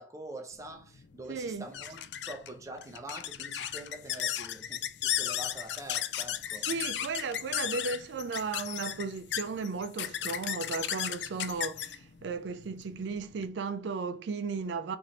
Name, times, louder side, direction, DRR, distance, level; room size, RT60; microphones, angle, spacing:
voice 1, 0.0-6.7, right 1 dB, 20° right, 0.6 m, -45 dB
sound 1, 0.6-13.5, left 11 dB, 70° left, 0.3 m, -35 dB
voice 2, 1.3-1.7 6.7-15.0, right 4 dB, 80° right, 0.4 m, -35 dB
3.1 x 2.6 x 4.0 m
head